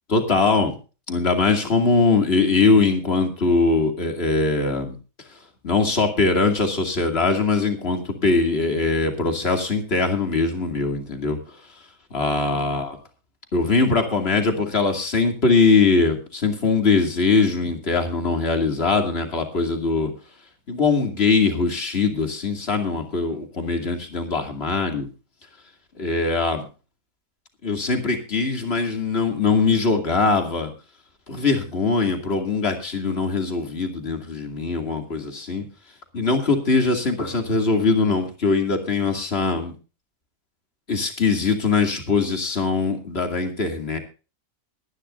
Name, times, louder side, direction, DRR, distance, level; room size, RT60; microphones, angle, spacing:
voice 1, 0.1-0.8 1.1-5.0 5.6-11.4 12.1-13.0 13.5-20.1 20.7-25.1 26.0-26.6 27.6-30.7 31.3-35.7 36.1-39.7 40.9-44.0, left 4 dB, 45° left, 4 dB, 2.8 m, -21 dB
22.0 x 11.0 x 2.6 m, 0.33 s
omnidirectional pair, 1.5 m